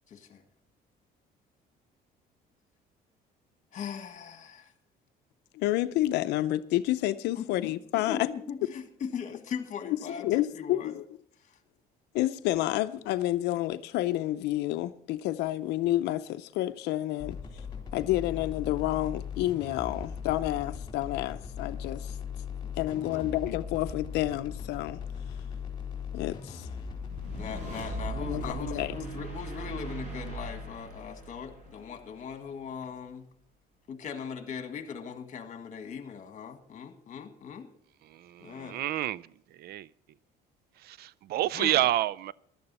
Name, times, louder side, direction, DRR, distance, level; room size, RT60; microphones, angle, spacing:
voice 1, 0.1-0.4 3.7-4.7 7.3-7.4 8.1-11.0 11.4-11.6 22.6-23.3 27.3-33.3 33.9-37.7 38.4-38.8 41.4-41.9, left 6 dB, 45° left, 1.8 m, -39 dB
voice 2, 5.5-8.2 9.9-10.0 10.2-11.0 12.1-17.6 17.9-22.2 22.8-25.0 26.1-26.7 28.2-29.0, left 15 dB, 85° left, 0.6 m, -29 dB
sound 1, 17.2-28.5, left 6 dB, 25° left, 3.9 m, -39 dB
sound 2, 27.1-32.4, right 3 dB, 45° right, 7.6 m, -40 dB
voice 3, 38.1-39.3 39.6-39.9 40.8-42.3, right 14 dB, 70° right, 0.4 m, -29 dB
15.5 x 12.0 x 4.2 m
cardioid pair, 110°, 17 cm